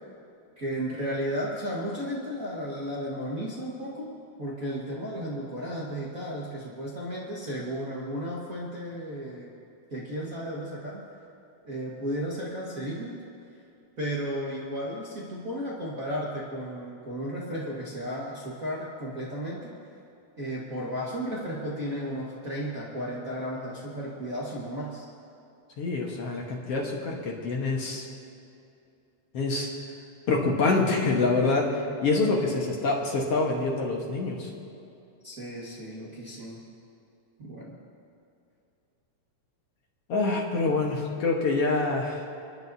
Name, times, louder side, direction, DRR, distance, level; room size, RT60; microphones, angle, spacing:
voice 1, 0.6-4.1 4.4-9.5 9.9-11.0 11.6-13.2 14.0-19.7 20.4-25.1 35.2-36.6 37.4-37.7, equal, 40° right, -6 dB, 1.4 m, -34 dB
voice 2, 25.8-28.1 29.3-29.7 30.3-34.5 40.1-42.3, left 3 dB, 60° left, -1 dB, 2.1 m, -26 dB
30.0 x 10.5 x 2.7 m, 2.7 s
omnidirectional pair, 3.5 m